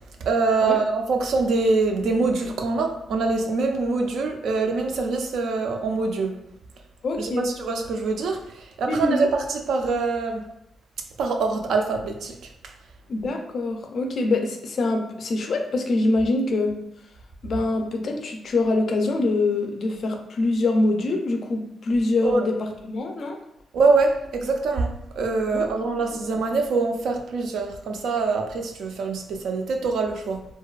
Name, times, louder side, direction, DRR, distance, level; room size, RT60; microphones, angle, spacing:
voice 1, 0.2-6.4 7.2-10.5 11.2-12.7 22.2-22.5 23.7-30.5, right 3 dB, 75° right, 4 dB, 0.3 m, -24 dB
voice 2, 7.0-7.5 8.8-9.3 13.1-16.7 17.4-22.5 22.8-23.4 25.5-25.6 26.1-26.2, left 2 dB, 55° left, 3 dB, 0.3 m, -24 dB
2.5 x 2.2 x 2.3 m, 0.80 s
cardioid pair, 125°, 0 cm